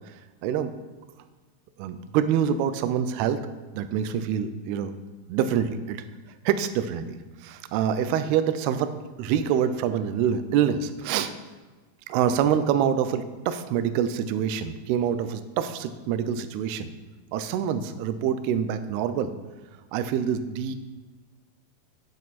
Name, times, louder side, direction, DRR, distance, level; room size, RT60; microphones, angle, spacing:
voice 1, 0.1-0.7 1.8-3.4 3.7-4.9 5.3-6.0 6.5-11.3 12.1-16.9 17.3-19.4 19.9-20.8, right 8 dB, 80° right, 10 dB, 2.5 m, -26 dB
17.5 x 6.5 x 4.2 m, 1.3 s
omnidirectional pair, 5.1 m